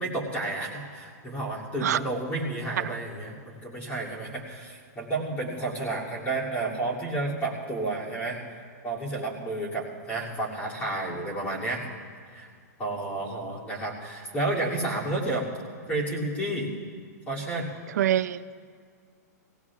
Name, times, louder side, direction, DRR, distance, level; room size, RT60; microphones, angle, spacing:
voice 1, 0.0-8.4 8.8-11.8 12.3-12.5 12.8-15.5 15.9-16.7 17.3-17.7, right 2 dB, 15° left, -5 dB, 2.6 m, -31 dB
voice 2, 18.0-18.6, right 11 dB, 70° right, 15 dB, 0.4 m, -24 dB
23.5 x 17.5 x 2.4 m, 2.1 s
hypercardioid pair, 165°, 9 cm